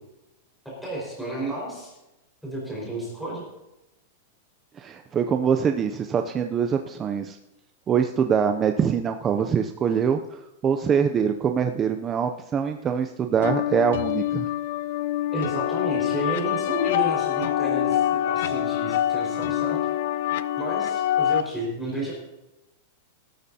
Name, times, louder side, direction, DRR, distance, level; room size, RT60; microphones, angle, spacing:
voice 1, 0.8-1.9 2.4-3.4 15.3-19.8 20.6-22.1, right 1 dB, ahead, -6 dB, 4.7 m, -31 dB
voice 2, 4.8-7.4 7.9-14.5, right 7 dB, 15° right, 6 dB, 0.4 m, -24 dB
sound 1, 13.4-21.4, left 12 dB, 60° left, 0.6 m, -25 dB
18.5 x 12.5 x 2.8 m, 0.95 s
supercardioid pair, 170°, 0 cm